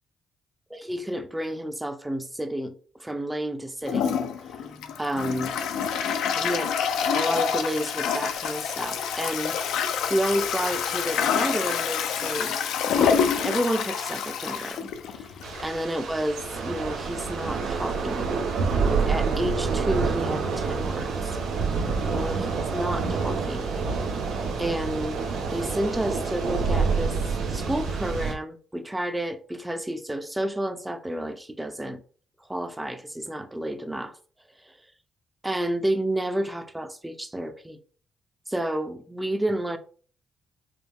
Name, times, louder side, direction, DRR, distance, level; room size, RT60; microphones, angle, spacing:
voice 1, 0.7-4.3 4.6-5.5 6.3-6.7 7.1-9.6 10.1-12.6 12.9-15.4 15.6-18.4 18.9-21.4 22.1-22.5 22.7-23.8 24.6-25.2 25.5-32.0 32.4-34.2 34.6-34.8 35.4-37.8 38.5-39.8, right 1 dB, 10° right, 0.5 m, -30 dB
Toilet flush, 3.8-15.6, left 7 dB, 85° left, 0.4 m, -27 dB
Thunder / Rain, 15.4-28.3, right 4 dB, 85° right, 0.8 m, -27 dB
4.9 x 2.1 x 3.4 m
cardioid pair, 90°, 0 cm